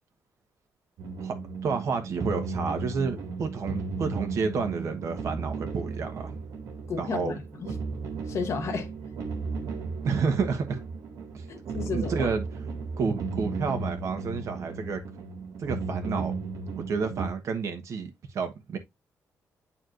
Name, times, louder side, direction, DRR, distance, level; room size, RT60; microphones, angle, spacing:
sound 1, 1.0-17.3, right 4 dB, 90° right, 1.9 m, -35 dB
voice 1, 1.6-6.4 7.0-7.4 10.0-10.8 11.3-11.5 11.9-12.5 13.0-15.0 15.6-16.3 16.7-18.8, right 5 dB, 60° right, 1.2 m, -30 dB
voice 2, 6.9-7.7 8.3-8.9 11.5-12.3, left 5 dB, 55° left, 1.0 m, -33 dB
9.3 x 4.2 x 2.5 m
cardioid pair, 145°, 6 cm